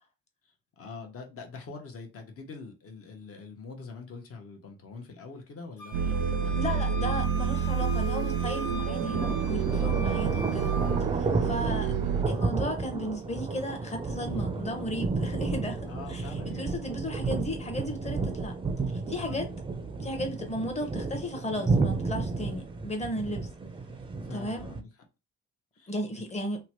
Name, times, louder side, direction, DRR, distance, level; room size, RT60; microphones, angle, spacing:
voice 1, 0.4-6.9 11.4-11.7 15.9-16.8 19.1-19.4 24.2-24.9 25.7-26.2, left 4 dB, 50° left, 1.0 m, -44 dB
Wind instrument woodwind instrument, 5.8-11.0, left 2 dB, 70° left, 1.2 m, -41 dB
sound 1, 5.9-12.2, right 7 dB, 85° right, 0.5 m, -28 dB
voice 2, 6.5-10.7 11.4-11.9 12.3-16.3 16.5-18.6 18.9-19.5 20.0-23.5 24.3-24.7 25.9-26.6, equal, 20° left, 0.9 m, -35 dB
sound 2, 8.9-24.8, right 3 dB, 15° right, 0.4 m, -32 dB
3.0 x 2.2 x 2.9 m
cardioid pair, 90°, 30 cm